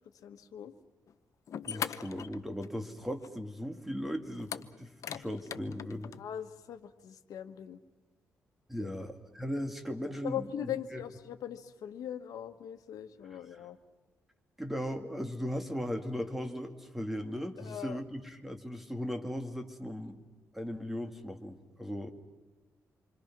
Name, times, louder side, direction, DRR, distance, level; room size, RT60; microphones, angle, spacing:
voice 1, 0.2-0.7 6.2-7.8 8.8-8.9 10.2-13.8 17.6-18.0, left 10 dB, 90° left, 7 dB, 1.3 m, -40 dB
sound 1, 1.1-1.2 1.5-2.9 3.2-3.3 4.4-6.2, left 8 dB, 60° left, 0.8 m, -40 dB
voice 2, 1.6-6.1 8.7-11.0 13.5-13.7 14.6-20.2 20.5-22.1, equal, 5° right, 6 dB, 2.0 m, -38 dB
27.5 x 25.0 x 6.0 m, 1.2 s
cardioid pair, 130°, 6 cm